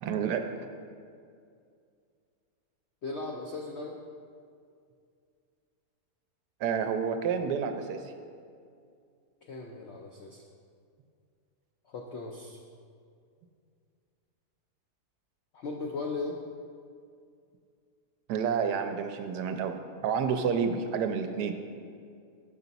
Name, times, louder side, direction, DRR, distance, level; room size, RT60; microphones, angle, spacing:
voice 1, 0.0-0.5 6.6-8.0 18.3-21.5, right 6 dB, 80° right, 7 dB, 1.1 m, -29 dB
voice 2, 3.0-4.0 9.4-10.4 11.9-12.6 15.5-16.4, left 3 dB, 80° left, 1 dB, 0.6 m, -37 dB
6.7 x 5.9 x 4.0 m, 2.3 s
omnidirectional pair, 1.7 m